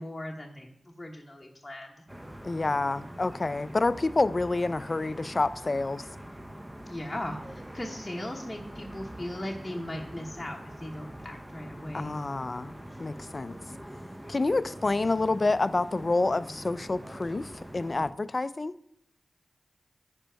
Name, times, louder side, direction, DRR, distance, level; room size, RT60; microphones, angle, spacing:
voice 1, 0.0-2.0 6.9-12.1, left 1 dB, 15° left, 1.1 m, -38 dB
sound 1, 2.1-18.1, equal, 15° right, 0.6 m, -44 dB
voice 2, 2.4-6.0 11.9-13.6 14.3-18.7, left 3 dB, 45° left, 0.4 m, -28 dB
9.8 x 5.2 x 4.5 m
cardioid pair, 60°, 0 cm